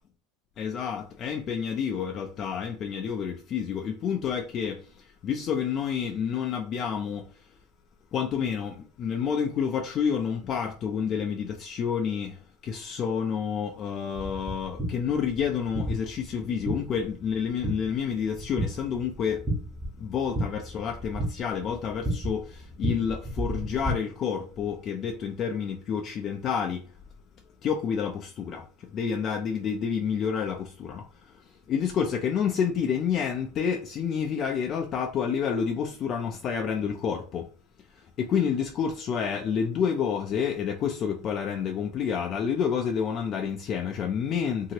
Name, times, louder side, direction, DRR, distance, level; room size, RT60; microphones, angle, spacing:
voice 1, 0.6-4.8 5.2-7.3 8.1-12.3 12.6-19.4 20.0-26.8 27.6-28.6 28.9-31.0 31.7-37.4 38.2-44.7, left 7 dB, 45° left, 0.4 m, -29 dB
sound 1, 14.1-23.9, right 1 dB, 15° right, 1.3 m, -34 dB
2.8 x 2.6 x 2.8 m
supercardioid pair, 105°, 0 cm